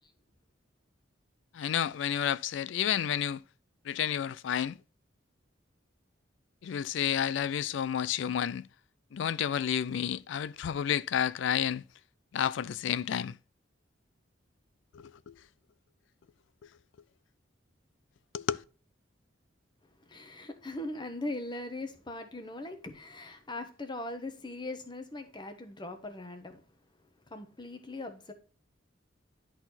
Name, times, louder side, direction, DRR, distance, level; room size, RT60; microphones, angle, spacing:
voice 1, 1.5-3.4 3.9-4.8 6.6-8.7 9.1-11.8 12.3-13.4 14.9-15.4 18.3-18.6, left 9 dB, 75° left, 0.3 m, -30 dB
voice 2, 20.1-26.6 27.3-28.3, left 2 dB, 25° left, 1.0 m, -40 dB
11.0 x 4.2 x 4.1 m
head